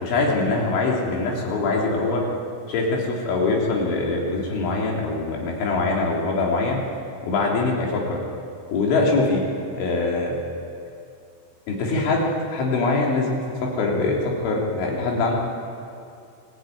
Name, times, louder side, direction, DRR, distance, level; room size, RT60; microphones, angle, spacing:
voice 1, 0.0-2.2 2.7-6.8 7.2-8.2 8.7-10.4 11.7-14.2 14.4-15.3, left 3 dB, 75° left, -2 dB, 5.6 m, -23 dB
24.0 x 15.5 x 9.3 m, 2.5 s
omnidirectional pair, 5.5 m